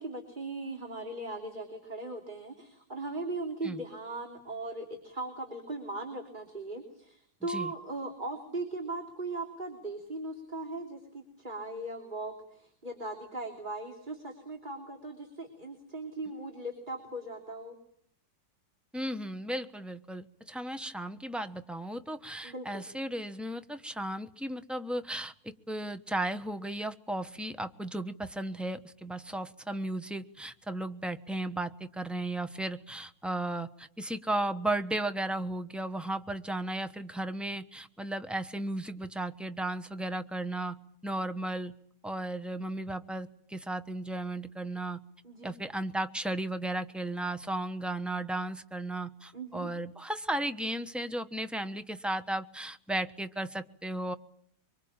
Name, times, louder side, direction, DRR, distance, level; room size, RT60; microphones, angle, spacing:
voice 1, 0.0-17.8 22.4-22.9 45.2-45.5 49.3-49.7, right 2 dB, 25° right, 2 dB, 3.2 m, -39 dB
voice 2, 7.4-7.7 18.9-40.8 41.0-41.7 42.0-45.0 45.4-54.1, right 1 dB, ahead, 9 dB, 0.6 m, -35 dB
24.5 x 24.0 x 8.8 m, 0.67 s
omnidirectional pair, 2.0 m